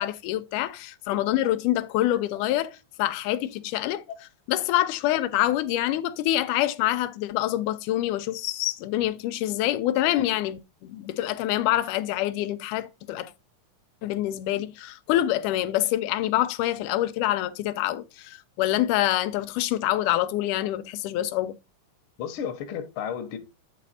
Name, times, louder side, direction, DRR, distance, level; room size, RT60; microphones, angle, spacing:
voice 1, 0.0-4.0 4.5-13.3 14.0-21.6, left 14 dB, 90° left, 2.2 m, -26 dB
voice 2, 22.2-23.4, left 8 dB, 60° left, 1.5 m, -33 dB
8.9 x 4.2 x 4.1 m
omnidirectional pair, 3.6 m